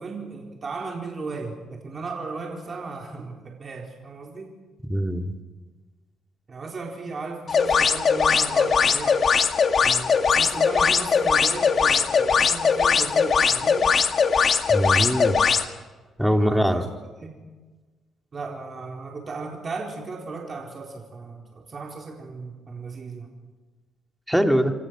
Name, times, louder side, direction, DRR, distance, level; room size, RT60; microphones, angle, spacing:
voice 1, 0.0-4.5 6.5-9.3 9.8-13.9 16.4-16.9 17.2-17.4 18.3-23.3, right 4 dB, 40° right, 0 dB, 4.2 m, -36 dB
voice 2, 4.9-5.3 14.7-15.4 16.2-16.8 24.3-24.7, equal, 5° right, 4 dB, 2.9 m, -22 dB
sound 1, 7.5-15.7, left 6 dB, 50° left, 2.0 m, -20 dB
29.0 x 24.0 x 6.4 m, 1.3 s
cardioid pair, 90°, 0 cm